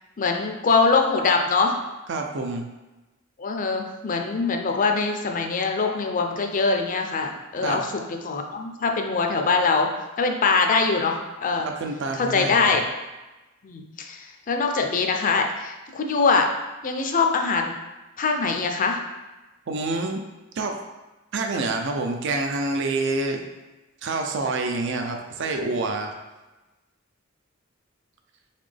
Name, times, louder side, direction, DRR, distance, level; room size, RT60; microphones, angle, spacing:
voice 1, 0.2-1.8 3.4-9.9 10.2-11.7 12.1-12.9 13.6-16.5 16.8-17.7 18.2-19.0, left 4 dB, 40° left, 4 dB, 0.5 m, -23 dB
voice 2, 2.1-2.7 7.6-7.8 11.6-12.8 19.7-20.2 20.6-20.8 21.3-23.4 24.0-26.1, right 3 dB, 60° right, 3 dB, 0.5 m, -27 dB
4.1 x 3.6 x 3.3 m, 1.1 s
head